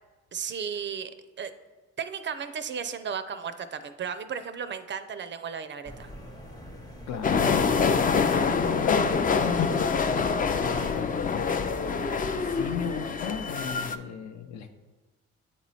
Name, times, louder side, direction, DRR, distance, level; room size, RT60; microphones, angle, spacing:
voice 1, 0.3-1.1 1.4-1.5 2.0-6.1, right 7 dB, 40° right, 10 dB, 0.4 m, -34 dB
sound 1, 5.8-10.9, equal, 15° left, 0.8 m, -43 dB
voice 2, 7.1-7.4 7.8-11.5 12.4-14.7, left 7 dB, 65° left, 7 dB, 0.7 m, -37 dB
sound 2, 7.2-14.0, left 5 dB, 30° left, 0.3 m, -25 dB
8.1 x 3.0 x 4.1 m, 1.3 s
cardioid pair, 90°, 30 cm